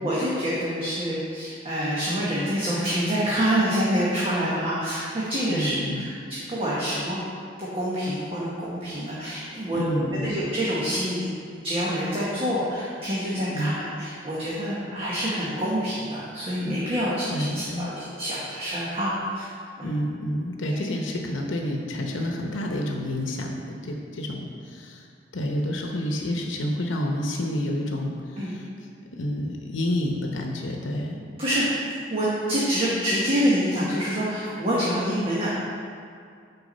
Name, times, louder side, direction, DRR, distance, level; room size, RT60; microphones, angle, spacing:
voice 1, 0.0-6.1 6.5-7.2 7.6-9.8 10.2-11.3 11.5-19.5 19.8-19.9 20.7-20.8 28.4-28.6 31.4-31.6 32.1-35.6, equal, 30° right, -8 dB, 1.3 m, -26 dB
voice 2, 5.5-6.1 9.7-10.4 13.4-13.8 17.3-17.9 19.8-25.1 25.3-28.7 29.2-31.2, left 1 dB, 90° left, 1 dB, 0.8 m, -29 dB
8.0 x 4.7 x 5.4 m, 2.3 s
head